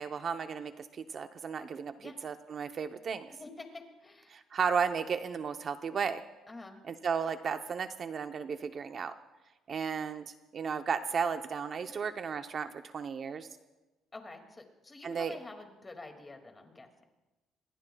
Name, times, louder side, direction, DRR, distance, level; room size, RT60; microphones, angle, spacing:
voice 1, 0.0-3.3 4.3-6.2 6.9-9.1 9.7-13.5 15.0-15.4, right 6 dB, 40° right, 8 dB, 0.7 m, -34 dB
voice 2, 3.4-4.4 6.5-6.8 11.9-12.1 14.1-17.1, left 2 dB, 20° left, 4 dB, 2.2 m, -48 dB
27.0 x 22.5 x 2.3 m, 1.1 s
cardioid pair, 125°, 0 cm